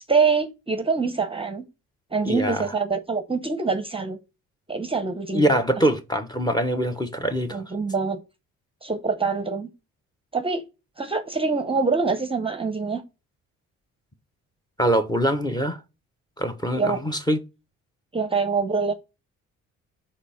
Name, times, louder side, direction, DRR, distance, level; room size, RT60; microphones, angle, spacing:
voice 1, 0.1-1.6 2.1-4.2 4.7-5.5 7.5-8.2 8.8-9.7 10.3-10.6 11.0-13.0 16.8-17.0 18.1-18.9, right 4 dB, 20° right, 0.8 m, -25 dB
voice 2, 2.2-2.6 5.3-7.6 14.8-15.8 16.4-17.4, equal, 15° left, 1.1 m, -23 dB
5.0 x 4.3 x 5.8 m
cardioid pair, 90°, 30 cm